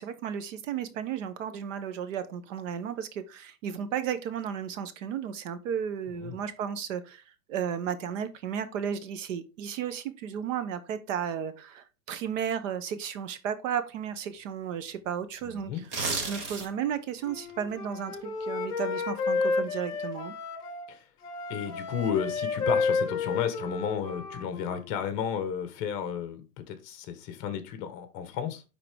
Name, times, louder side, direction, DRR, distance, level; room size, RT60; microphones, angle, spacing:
voice 1, 0.0-7.2 7.5-15.7 16.3-20.3, right 8 dB, 55° right, 1.0 m, -34 dB
voice 2, 15.4-15.8 20.9-21.0 21.5-28.6, left 7 dB, 35° left, 1.2 m, -33 dB
sound 1, 15.8-16.9 17.3-17.5, right 4 dB, 25° right, 1.2 m, -32 dB
Wind instrument woodwind instrument, 17.2-20.9 21.2-24.8, left 4 dB, 10° left, 0.4 m, -31 dB
10.0 x 3.8 x 3.5 m
supercardioid pair, 155°, 47 cm